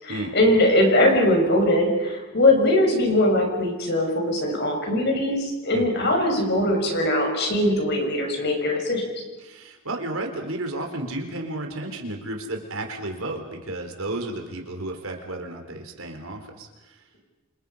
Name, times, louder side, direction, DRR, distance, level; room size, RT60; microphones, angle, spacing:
voice 1, 0.0-9.2, left 1 dB, 50° left, 2 dB, 6.4 m, -21 dB
voice 2, 9.4-17.0, right 2 dB, 80° right, 3 dB, 4.1 m, -32 dB
28.5 x 27.0 x 5.6 m, 1.1 s
head